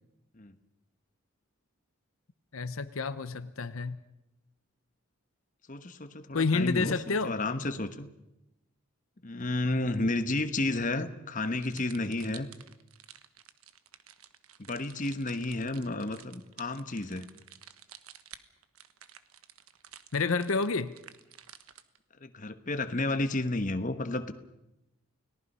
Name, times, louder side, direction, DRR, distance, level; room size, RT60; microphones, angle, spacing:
voice 1, 2.5-4.0 6.3-7.3 20.1-20.9, left 4 dB, 75° left, 12 dB, 0.8 m, -29 dB
voice 2, 5.7-8.1 9.2-12.5 14.6-17.3 22.2-24.3, left 2 dB, 35° left, 10 dB, 1.1 m, -32 dB
sound 1, 11.6-22.0, right 10 dB, 85° right, 1.2 m, -52 dB
29.5 x 18.5 x 5.5 m, 0.89 s
head